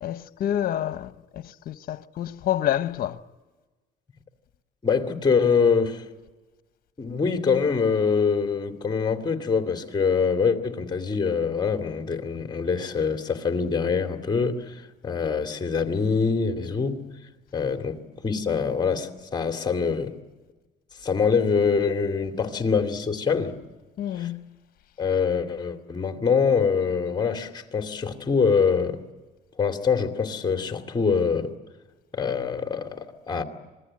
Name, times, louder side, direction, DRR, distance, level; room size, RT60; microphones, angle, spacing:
voice 1, 0.0-3.2 24.0-24.5, left 11 dB, 60° left, 1.1 m, -28 dB
voice 2, 4.8-6.1 7.0-17.0 17.5-18.0 18.2-20.2 21.0-23.6 24.2-24.3 25.0-29.0 29.6-31.5 32.1-33.4, left 5 dB, 25° left, 2.5 m, -24 dB
27.0 x 20.5 x 8.8 m
cardioid pair, 110°, 17 cm